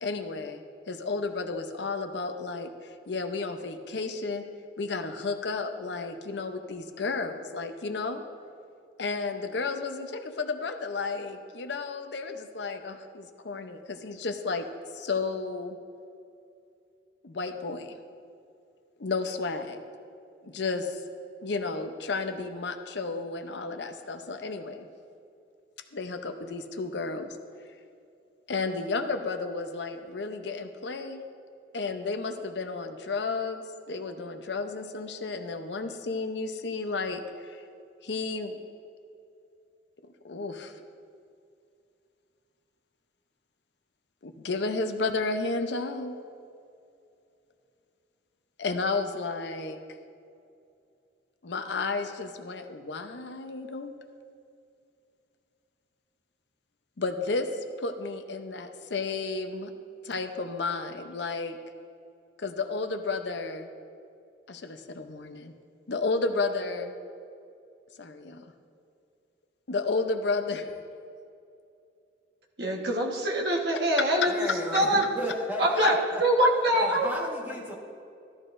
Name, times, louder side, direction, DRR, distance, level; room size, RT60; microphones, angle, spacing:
voice 1, 0.0-4.4 4.8-8.2 9.0-14.7 14.9-15.8 17.2-18.0 19.0-19.8 20.4-21.0 21.4-24.9 25.9-27.4 28.5-31.2 31.7-37.6 38.0-38.6 40.2-40.8 44.2-46.1 48.6-49.8 51.4-53.9 57.0-59.7 60.0-61.6 62.4-63.7 64.5-65.5 65.9-66.9 68.0-68.5 69.7-70.7 74.0-74.1 75.8-75.9 76.4-76.5, left 3 dB, 70° left, 6 dB, 0.7 m, -32 dB
voice 2, 72.6-74.5 74.7-75.1 75.6-77.1, right 1 dB, 60° right, 0 dB, 1.3 m, -24 dB
voice 3, 74.2-76.3 76.7-77.7, equal, 10° right, -3 dB, 1.4 m, -34 dB
13.5 x 12.0 x 2.6 m, 2.5 s
head